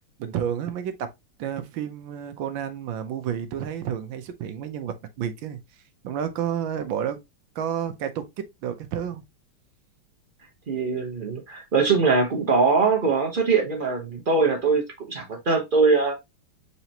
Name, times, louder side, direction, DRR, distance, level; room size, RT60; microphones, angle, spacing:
voice 1, 0.2-1.1 1.4-5.6 6.0-7.2 7.5-8.3 8.6-9.2, right 9 dB, 70° right, 1.4 m, -30 dB
voice 2, 10.7-16.2, right 4 dB, 45° right, 0.6 m, -22 dB
4.6 x 4.0 x 2.8 m
omnidirectional pair, 2.4 m